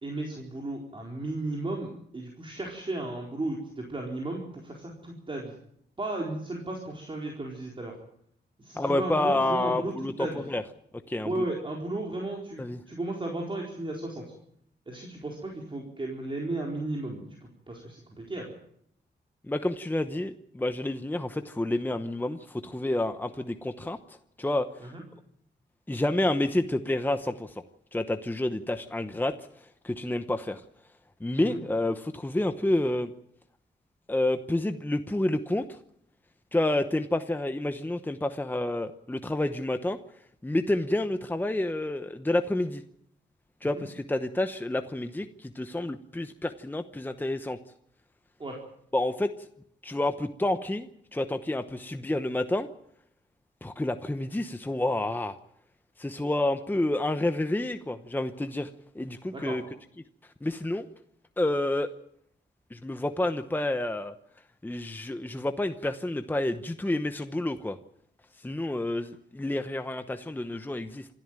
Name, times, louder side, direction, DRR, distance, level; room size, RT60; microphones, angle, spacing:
voice 1, 0.0-5.5 6.0-8.0 8.6-10.4 11.2-14.2 14.9-18.5 24.8-25.0 31.5-31.6 43.8-43.9 48.4-48.6 59.3-59.6, right 2 dB, 30° right, -1 dB, 4.3 m, -35 dB
voice 2, 8.8-10.6 11.1-11.4 12.6-12.8 19.5-24.0 24.4-24.7 25.9-27.6 27.9-29.3 29.8-30.6 31.2-33.1 34.1-35.8 36.5-40.0 40.4-42.8 43.6-47.6 48.9-49.3 49.8-52.7 53.6-55.4 56.0-58.7 58.9-59.6 60.4-60.9 61.4-61.9 62.7-64.1 64.6-67.8 68.4-71.1, left 1 dB, 10° left, 8 dB, 0.9 m, -29 dB
27.0 x 13.0 x 9.0 m, 0.71 s
wide cardioid pair, 120°, 19 cm